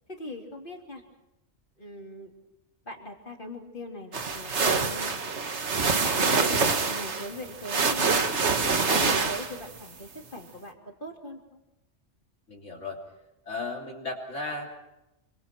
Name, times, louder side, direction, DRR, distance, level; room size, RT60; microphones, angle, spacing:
voice 1, 0.1-1.0 1.8-2.3 2.8-5.3 5.9-8.3 8.6-11.4, left 1 dB, 45° left, 2 dB, 3.4 m, -40 dB
sound 1, 4.1-9.8, right 4 dB, 65° right, 1.8 m, -26 dB
voice 2, 12.5-13.0 13.5-14.7, left 2 dB, 75° left, 0 dB, 3.6 m, -35 dB
27.5 x 25.5 x 4.6 m, 0.92 s
omnidirectional pair, 1.2 m